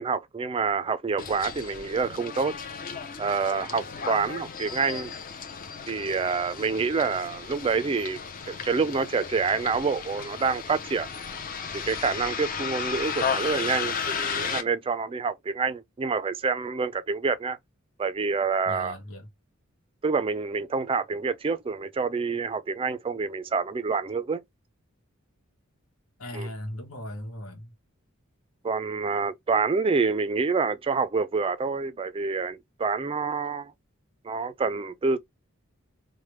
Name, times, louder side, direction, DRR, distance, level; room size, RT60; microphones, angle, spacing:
voice 1, 0.0-2.5 3.2-5.1 5.9-11.1 11.7-17.6 18.0-19.0 20.0-24.4 26.3-26.5 28.6-33.7 34.2-35.2, right 4 dB, 25° right, 0.4 m, -27 dB
Bus, 1.2-14.6, left 6 dB, 45° left, 0.6 m, -34 dB
voice 2, 18.6-19.3 26.2-27.7, left 1 dB, 80° left, 1.1 m, -38 dB
3.3 x 2.1 x 3.0 m
head